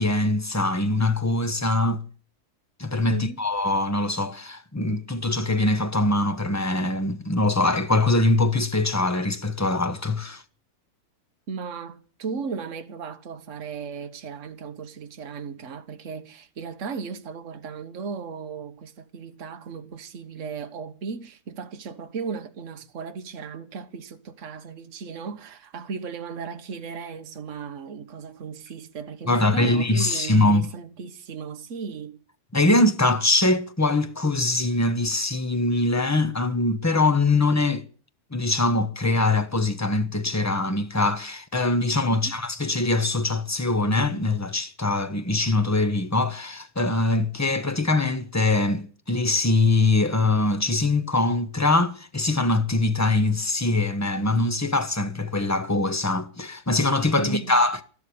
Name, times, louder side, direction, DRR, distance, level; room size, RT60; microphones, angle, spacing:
voice 1, 0.0-2.0 2.8-10.4 29.3-30.7 32.5-37.8 38.3-57.8, left 2 dB, 15° left, 0.9 m, -23 dB
voice 2, 11.5-32.2 42.1-42.3 57.2-57.6, right 5 dB, 55° right, 1.5 m, -36 dB
13.0 x 12.0 x 8.6 m
omnidirectional pair, 1.6 m